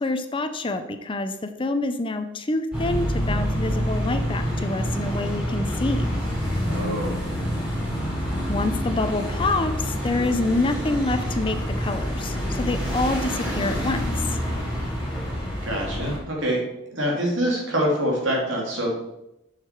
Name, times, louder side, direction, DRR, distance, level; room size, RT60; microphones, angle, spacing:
voice 1, 0.0-1.3 1.6-6.1 8.5-14.2, left 2 dB, 25° left, 8 dB, 0.5 m, -27 dB
sound 1, 2.7-16.2, equal, 5° right, 3.4 m, -27 dB
voice 2, 6.6-7.1 15.6-16.6 16.9-18.9, equal, 70° right, -2 dB, 2.9 m, -25 dB
7.8 x 6.6 x 4.6 m, 0.88 s
head